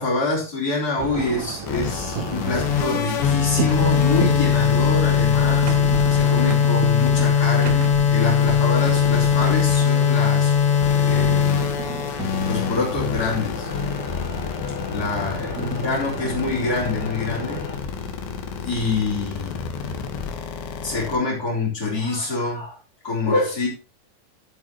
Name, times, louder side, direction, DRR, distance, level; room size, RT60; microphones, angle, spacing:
voice 1, 0.0-5.7 6.1-10.6 11.0-11.7 12.5-13.7 14.8-17.6 18.6-19.6 20.8-22.8 23.0-23.7, left 3 dB, 20° left, -3 dB, 4.4 m, -26 dB
sound 1, 1.0-16.9, right 6 dB, 65° right, 1.8 m, -34 dB
sound 2, 1.7-21.2, left 7 dB, 80° left, 3.9 m, -21 dB
sound 3, 4.3-17.8, left 3 dB, 50° left, 5.2 m, -39 dB
13.5 x 8.6 x 3.2 m, 0.33 s
omnidirectional pair, 5.0 m